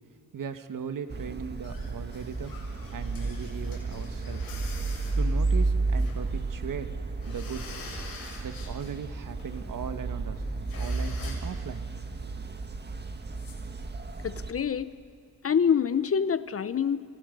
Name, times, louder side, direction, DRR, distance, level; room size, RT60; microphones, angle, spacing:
voice 1, 0.3-2.5 2.9-4.4 5.2-6.9 7.3-7.6 8.4-10.4 10.8-11.8 12.2-12.4, right 7 dB, 55° right, 9 dB, 1.7 m, -38 dB
sound 1, 1.1-14.5, right 3 dB, 25° right, 1.7 m, -32 dB
sound 2, 1.6-6.4 6.7-6.8 7.1-9.0 9.2-9.6 10.0-10.1 10.3-10.4 10.7-11.6 13.3-13.5, left 4 dB, 60° left, 7.4 m, -46 dB
voice 2, 14.2-14.9 15.4-17.0, left 7 dB, 35° left, 15 dB, 0.7 m, -26 dB
29.5 x 27.0 x 5.4 m, 2.1 s
cardioid pair, 80°, 38 cm